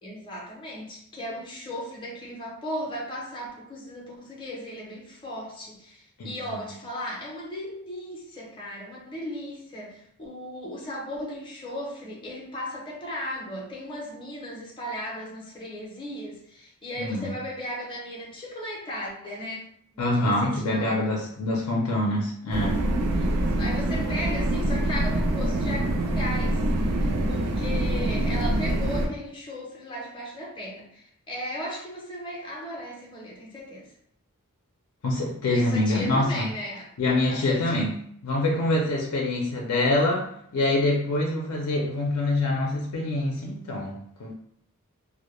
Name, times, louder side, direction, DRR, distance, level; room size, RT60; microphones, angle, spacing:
voice 1, 0.0-19.7 19.9-21.0 23.1-26.6 27.0-33.9 35.5-36.9 37.3-37.8 38.5-38.6, equal, 20° left, -3 dB, 0.5 m, -36 dB
voice 2, 6.2-6.7 17.0-17.3 20.0-22.8 35.0-36.5 37.0-37.9 38.2-44.3, left 2 dB, 85° left, -1 dB, 0.4 m, -25 dB
sound 1, 22.5-29.1, right 1 dB, 80° right, 0.4 m, -25 dB
2.2 x 2.0 x 2.9 m, 0.67 s
head